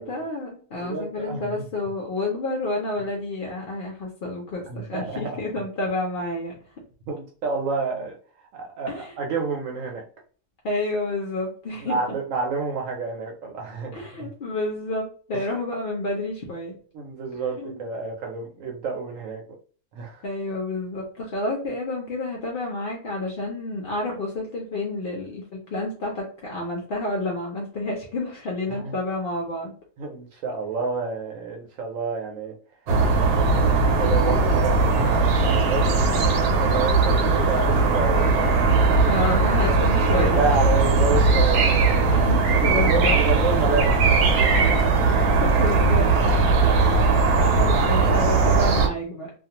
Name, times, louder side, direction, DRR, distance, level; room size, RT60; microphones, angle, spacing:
voice 1, 0.0-6.5 8.9-9.1 10.6-12.0 13.9-16.7 17.6-17.9 20.2-29.7 39.1-40.6 40.8-41.0 41.3-41.4 42.1-43.2 45.4-46.1 46.9-47.0 47.4-49.3, left 2 dB, 60° left, -1 dB, 0.6 m, -29 dB
voice 2, 0.8-1.6 4.7-5.4 7.1-8.2 8.5-10.0 11.8-14.3 16.9-19.4 19.9-20.2 28.7-28.9 30.0-32.5 33.5-39.2 40.0-42.2 42.6-45.0, right 5 dB, 65° right, 1 dB, 0.9 m, -29 dB
sound 1, 32.9-48.9, right 3 dB, 85° right, 1.2 m, -19 dB
2.4 x 2.3 x 2.8 m, 0.43 s
omnidirectional pair, 1.6 m